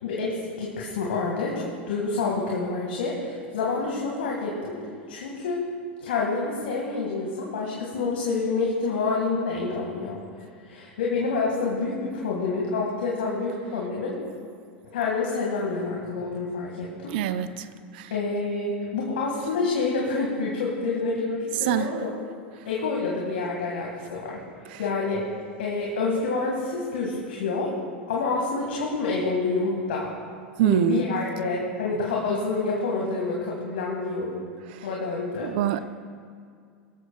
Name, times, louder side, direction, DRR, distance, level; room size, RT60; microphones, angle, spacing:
voice 1, 0.0-4.8 5.1-5.6 6.0-10.2 10.6-14.2 14.9-17.2 18.1-22.1 22.6-24.4 24.8-25.3 25.6-27.7 28.1-30.1 30.6-34.4 34.8-35.5, left 3 dB, 70° left, -3 dB, 1.9 m, -28 dB
voice 2, 17.1-17.7 17.9-18.1 21.6-21.9 24.7-24.8 30.6-31.0 34.7-34.9 35.4-35.8, right 11 dB, 60° right, 13 dB, 0.6 m, -24 dB
19.5 x 13.0 x 2.3 m, 2.2 s
hypercardioid pair, 85°, 6 cm